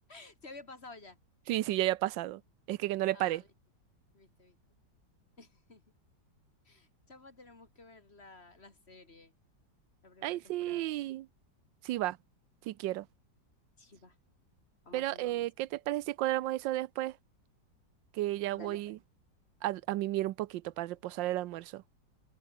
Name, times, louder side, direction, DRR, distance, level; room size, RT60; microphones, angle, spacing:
voice 1, 0.1-1.2 3.1-3.5 4.1-4.6 5.4-5.8 6.6-9.3 10.0-10.9 13.8-14.2 14.8-15.5 18.5-19.0, left 3 dB, 35° left, 3.0 m, -53 dB
voice 2, 1.5-2.4 2.7-3.4 10.2-11.3 11.8-12.2 12.6-13.1 14.9-17.2 18.1-19.0 19.6-21.8, right 15 dB, 85° right, 1.4 m, -33 dB
open air
omnidirectional pair, 1.9 m